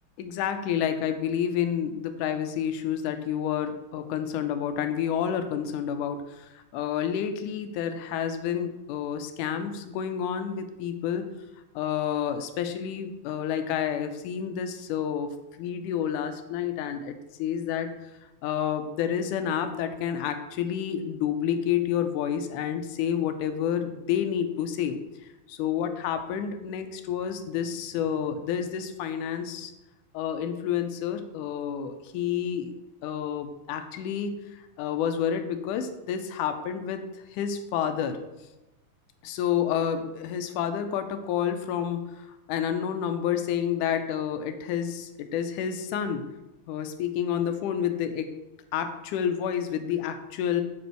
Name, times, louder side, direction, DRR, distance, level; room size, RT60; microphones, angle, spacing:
voice 1, 0.2-11.2 11.7-15.3 15.6-18.1 18.4-25.0 25.5-29.7 30.1-38.2 39.2-46.3 46.7-48.3 48.7-50.6, left 9 dB, 80° left, 8 dB, 2.1 m, -29 dB
7.3 x 4.3 x 4.5 m, 0.99 s
omnidirectional pair, 3.7 m